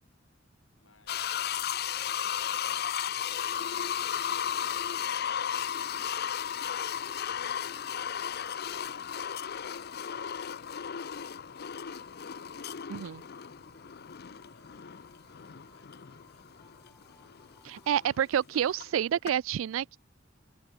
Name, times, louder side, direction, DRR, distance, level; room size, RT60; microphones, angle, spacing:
voice 1, 0.8-6.6 7.4-10.9 14.2-18.4, left 3 dB, 80° left, 6.7 m, -65 dB
sound 1, 1.1-18.9 19.3-19.4, left 9 dB, 55° left, 0.6 m, -35 dB
sound 2, 3.3-18.1, left 1 dB, 10° left, 3.5 m, -63 dB
voice 2, 12.9-13.2 17.6-20.0, right 9 dB, 85° right, 0.3 m, -29 dB
head